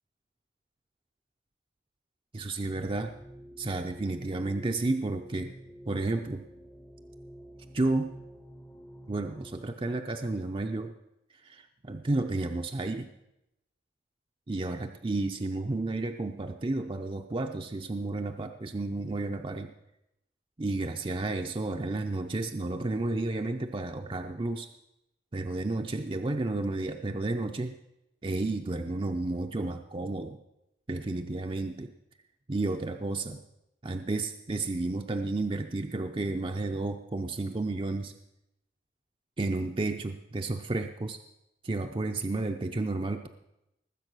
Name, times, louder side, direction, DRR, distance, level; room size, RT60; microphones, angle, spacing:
voice 1, 2.3-3.1 3.6-5.5 5.9-6.4 7.7-8.1 9.1-10.9 11.4-13.1 14.5-19.7 20.6-24.7 25.3-27.7 28.2-30.4 30.9-31.9 32.5-33.4 33.8-38.1 39.4-41.2 41.6-43.3, right 2 dB, 30° right, 5 dB, 0.6 m, -32 dB
sound 1, 2.6-9.7, right 1 dB, 15° left, 0.7 m, -49 dB
19.5 x 7.8 x 6.2 m, 0.88 s
head